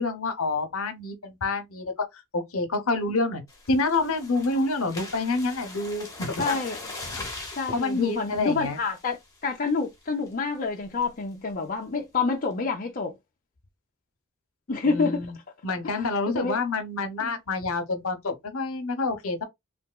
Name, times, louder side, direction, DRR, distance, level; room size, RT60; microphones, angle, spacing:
voice 1, 0.0-1.9 2.3-3.4 3.7-6.4 7.1-7.3 7.7-8.8 14.8-15.3 15.6-19.4, left 3 dB, 70° left, 0.9 m, -27 dB
sound 1, 3.5-9.3 9.7-9.9 10.3-10.4 10.7-11.0, left 3 dB, 15° left, 0.9 m, -40 dB
voice 2, 6.4-6.8 7.6-13.1 14.7-15.3 15.8-16.6 17.2-17.3, left 4 dB, 40° left, 0.5 m, -28 dB
3.4 x 2.7 x 2.3 m
head